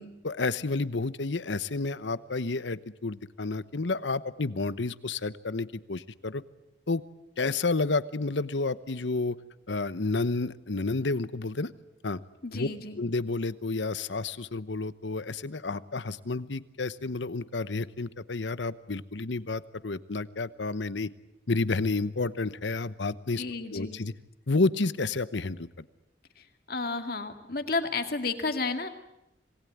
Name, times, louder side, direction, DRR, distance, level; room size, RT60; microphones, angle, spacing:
voice 1, 0.2-6.4 6.9-7.0 7.4-9.4 9.7-11.7 12.0-12.2 12.5-12.7 13.0-21.1 21.5-23.4 23.7-24.1 24.5-25.7, left 3 dB, 85° left, 16 dB, 1.0 m, -30 dB
voice 2, 12.4-13.0 23.4-24.0 26.4-28.9, left 3 dB, 55° left, 7 dB, 2.3 m, -32 dB
26.5 x 19.5 x 9.4 m, 0.90 s
head